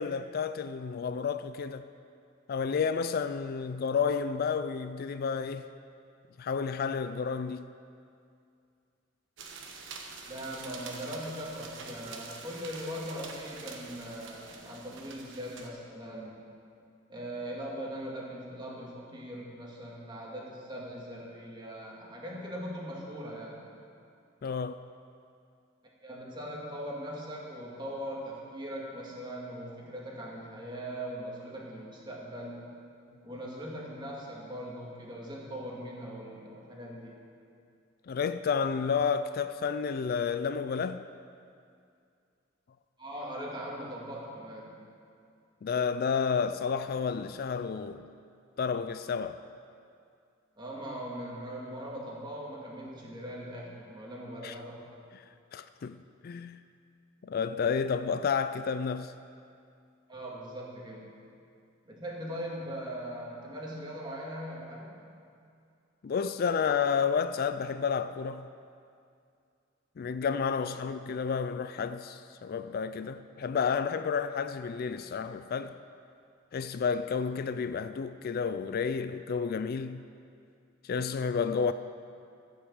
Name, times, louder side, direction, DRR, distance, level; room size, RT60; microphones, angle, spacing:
voice 1, 0.0-1.8 2.5-5.7 6.4-7.7 24.4-24.8 38.1-41.0 45.6-48.1 48.6-49.4 54.4-54.5 55.5-56.0 56.2-56.6 57.2-59.1 66.0-68.5 70.0-75.8 76.5-80.1 80.8-81.7, left 6 dB, 50° left, 0.3 m, -31 dB
sound 1, 9.4-15.7, right 4 dB, 65° right, 1.3 m, -46 dB
voice 2, 10.3-16.4 17.1-23.6 26.0-32.7 33.2-37.2 43.0-44.8 50.6-54.8 60.1-61.1 61.9-65.0 70.6-71.0, equal, 25° right, 2.3 m, -40 dB
15.0 x 6.6 x 7.8 m
head